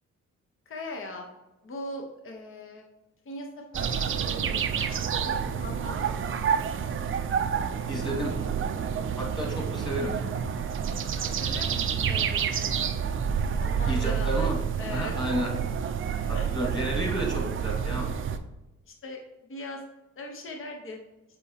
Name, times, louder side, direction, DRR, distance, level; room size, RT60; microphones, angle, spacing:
voice 1, 0.7-1.3 1.6-2.8 3.2-6.2 11.2-12.7 13.6-15.3 16.3-16.5 18.8-19.2 19.5-19.8 20.2-21.0, left 2 dB, 45° left, 2 dB, 1.2 m, -40 dB
sound 1, 3.7-18.4, right 7 dB, 40° right, 0.6 m, -29 dB
sound 2, 6.8-14.2, right 6 dB, 20° right, 0.9 m, -45 dB
voice 2, 7.9-8.3 9.2-10.1 13.9-14.6 14.9-15.5 16.3-18.2, equal, 15° left, -1 dB, 2.2 m, -31 dB
7.4 x 4.5 x 2.9 m, 1.0 s
cardioid pair, 90°, 30 cm